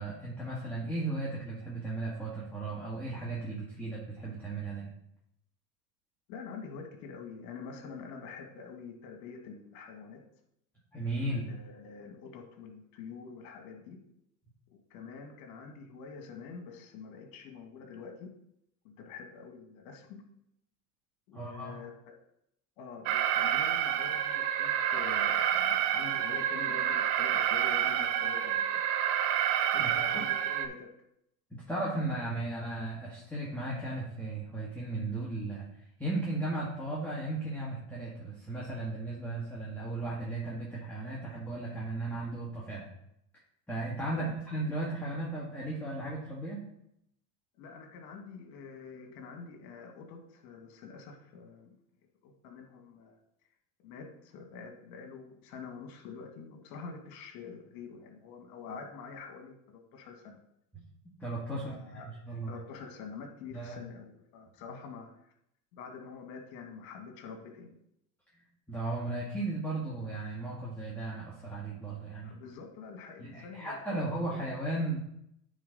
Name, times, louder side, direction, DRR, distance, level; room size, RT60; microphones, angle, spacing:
voice 1, 0.0-4.9 10.9-11.5 21.3-21.8 29.5-30.2 31.6-35.7 36.0-42.9 43.7-46.6 60.7-60.8 61.2-62.6 63.5-63.8 64.7-64.8 68.7-72.3 73.2-75.0, right 2 dB, 5° left, -6 dB, 1.7 m, -36 dB
voice 2, 6.3-10.2 11.5-14.0 14.7-18.3 18.8-20.2 21.3-22.0 22.8-28.8 29.7-30.9 44.1-44.3 47.6-51.7 52.2-53.2 53.8-60.4 61.5-62.1 62.5-65.3 65.7-67.7 72.2-74.0, left 5 dB, 60° left, 5 dB, 1.8 m, -46 dB
Alarm, 23.1-30.7, right 10 dB, 60° right, 0.9 m, -29 dB
9.3 x 4.1 x 4.1 m, 0.77 s
hypercardioid pair, 105°, 48 cm